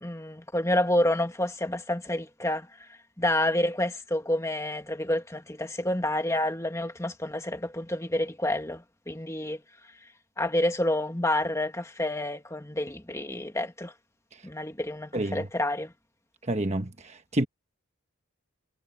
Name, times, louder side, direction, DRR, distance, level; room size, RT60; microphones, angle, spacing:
voice 1, 0.0-2.9 3.2-9.6 10.4-13.9 14.4-15.9, left 1 dB, 15° left, 1.7 m, -29 dB
voice 2, 15.1-15.4 16.5-17.5, right 1 dB, 30° right, 1.2 m, -28 dB
head